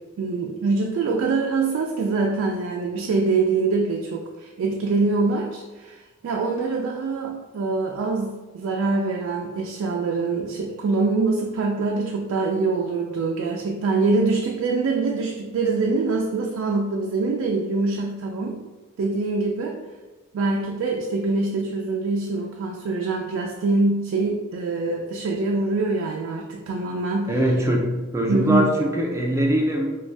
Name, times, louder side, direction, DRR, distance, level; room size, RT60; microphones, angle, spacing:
voice 1, 0.2-18.6 19.0-19.8 20.3-27.3 28.3-28.7, right 3 dB, 85° right, 0 dB, 0.3 m, -24 dB
voice 2, 27.3-29.9, equal, 15° right, -1 dB, 0.4 m, -22 dB
2.5 x 2.2 x 3.3 m, 1.2 s
head